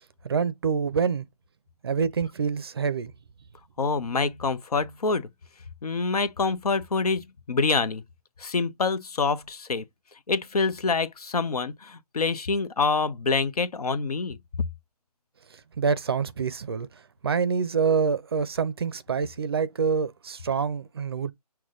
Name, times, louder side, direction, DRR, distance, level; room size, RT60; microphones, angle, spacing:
voice 1, 0.2-1.2 1.8-3.1 15.8-16.9 17.2-21.3, right 5 dB, 40° right, 0.5 m, -26 dB
voice 2, 3.8-5.3 5.8-8.0 8.4-9.8 10.3-14.4, left 4 dB, 70° left, 0.8 m, -26 dB
6.1 x 2.2 x 3.8 m
hypercardioid pair, 160°, 20 cm